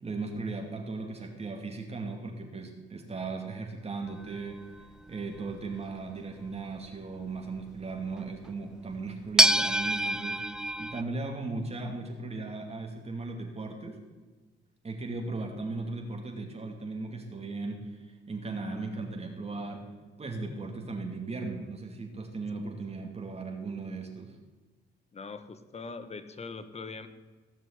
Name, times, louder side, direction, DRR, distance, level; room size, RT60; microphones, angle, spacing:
voice 1, 0.0-4.6 5.1-10.4 10.8-14.0 14.8-19.8 20.2-24.4, right 3 dB, 30° right, 2 dB, 2.6 m, -37 dB
sound 1, 4.2-5.7 8.5-8.6 9.4-11.0, right 1 dB, 5° right, 0.5 m, -26 dB
voice 2, 25.1-27.1, left 4 dB, 30° left, 11 dB, 1.4 m, -41 dB
16.5 x 6.1 x 9.6 m, 1.3 s
cardioid pair, 90°, 20 cm